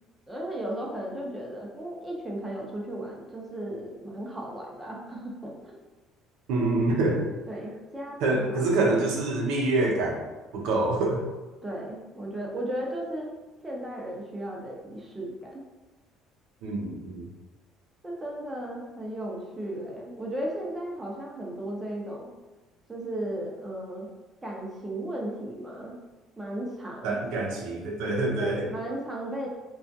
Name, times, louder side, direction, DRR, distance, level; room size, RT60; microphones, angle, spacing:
voice 1, 0.3-5.8 7.5-9.0 11.6-13.3 13.6-15.6 18.0-22.3 22.9-24.1 24.4-26.0 26.4-27.2 28.4-29.5, right 1 dB, 15° right, -2 dB, 0.6 m, -35 dB
voice 2, 6.5-7.3 8.2-10.2 10.5-11.2 16.6-17.3 27.0-28.7, right 2 dB, 85° right, -1 dB, 0.5 m, -26 dB
2.3 x 2.2 x 2.6 m, 1.2 s
cardioid pair, 110°, 0 cm